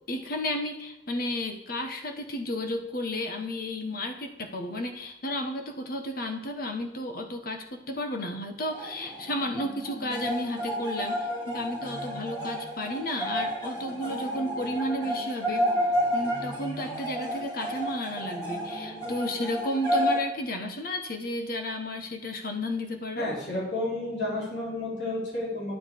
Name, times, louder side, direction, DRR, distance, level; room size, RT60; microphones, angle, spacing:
voice 1, 0.1-15.7 16.1-23.3, left 1 dB, 55° left, 4 dB, 1.3 m, -32 dB
sound 1, 8.7-20.2, equal, 20° left, 4.0 m, -31 dB
voice 2, 23.2-25.7, left 1 dB, 75° left, -5 dB, 3.8 m, -31 dB
9.9 x 8.8 x 4.7 m, 0.93 s
head